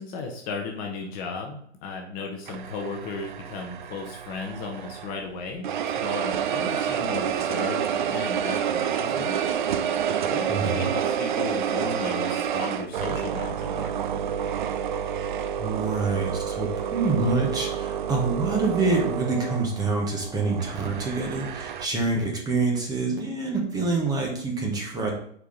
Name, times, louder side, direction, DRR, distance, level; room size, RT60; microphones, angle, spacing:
voice 1, 0.0-5.7 6.0-9.6 10.2-13.9, left 4 dB, 25° left, 2 dB, 0.8 m, -35 dB
sound 1, 2.5-5.2 5.6-21.8, right 8 dB, 45° right, 0.4 m, -29 dB
voice 2, 10.5-10.8 15.6-25.1, right 3 dB, 10° right, 0 dB, 1.0 m, -26 dB
4.7 x 4.4 x 5.2 m, 0.65 s
figure-of-eight pair, 115°, 36 cm